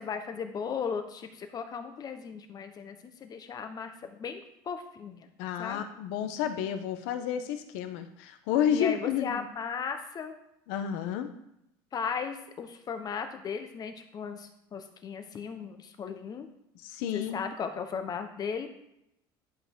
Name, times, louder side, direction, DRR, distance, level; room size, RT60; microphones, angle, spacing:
voice 1, 0.0-5.3 5.6-5.8 8.7-10.3 11.9-16.5 17.1-18.7, left 6 dB, 35° left, 7 dB, 1.0 m, -36 dB
voice 2, 5.4-9.5 10.7-11.3 16.8-17.4, left 9 dB, 80° left, 9 dB, 0.9 m, -30 dB
10.5 x 5.1 x 3.8 m, 0.82 s
supercardioid pair, 115°, 11 cm